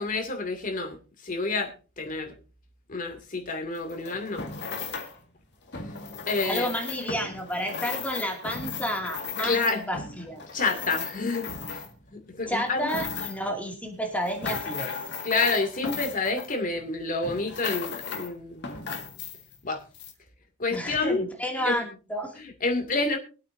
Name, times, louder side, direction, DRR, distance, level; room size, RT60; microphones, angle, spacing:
voice 1, 0.0-2.3 2.9-4.5 6.3-6.7 9.4-9.9 10.5-11.8 12.1-12.9 15.2-18.7 19.6-19.8 20.6-21.3 21.6-21.9 22.3-23.2, left 3 dB, 40° left, 2.5 m, -29 dB
sound 1, 3.7-5.2 5.7-12.1 12.5-13.5 14.0-16.9 17.2-18.3 18.6-19.6 19.9-20.1, left 5 dB, 55° left, 2.0 m, -36 dB
voice 2, 6.4-9.6 9.9-10.4 12.5-14.9 20.7-22.3, equal, 5° left, 2.4 m, -31 dB
24.0 x 8.5 x 2.7 m
head